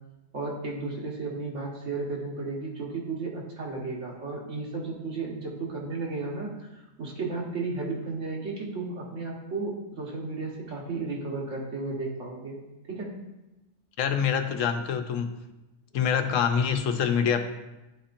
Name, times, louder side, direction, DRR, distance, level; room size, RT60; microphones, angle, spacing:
voice 1, 0.3-12.6 12.9-13.1, right 3 dB, 70° right, -2 dB, 1.7 m, -34 dB
voice 2, 14.0-15.3 15.9-17.4, left 7 dB, 80° left, 7 dB, 1.0 m, -25 dB
11.0 x 4.2 x 2.6 m, 1.0 s
omnidirectional pair, 1.3 m